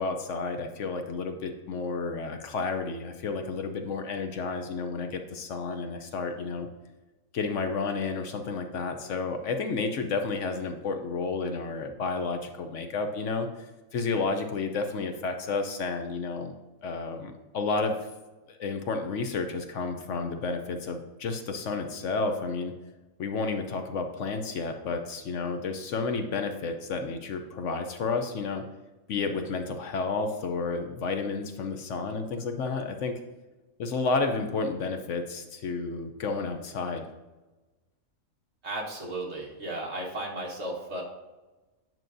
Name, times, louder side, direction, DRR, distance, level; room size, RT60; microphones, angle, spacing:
voice 1, 0.0-6.7 7.3-16.5 16.8-18.0 18.6-22.7 23.2-28.6 29.1-33.2 33.8-37.1, left 4 dB, 65° left, 6 dB, 0.9 m, -31 dB
voice 2, 38.6-41.0, right 1 dB, 55° right, -1 dB, 1.6 m, -34 dB
9.1 x 6.0 x 2.6 m, 1.1 s
omnidirectional pair, 1.4 m